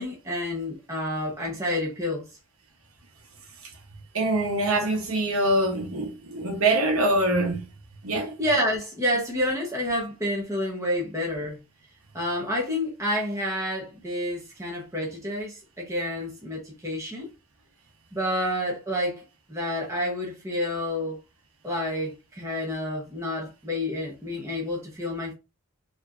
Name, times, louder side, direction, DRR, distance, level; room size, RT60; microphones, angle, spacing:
voice 1, 0.0-2.3 8.4-11.6 12.1-17.3 18.1-19.2 19.5-21.2 21.6-25.3, left 1 dB, 15° right, 1.1 m, -29 dB
voice 2, 4.1-7.7 8.0-8.4, right 2 dB, 85° right, 1.2 m, -24 dB
4.6 x 3.0 x 2.6 m
head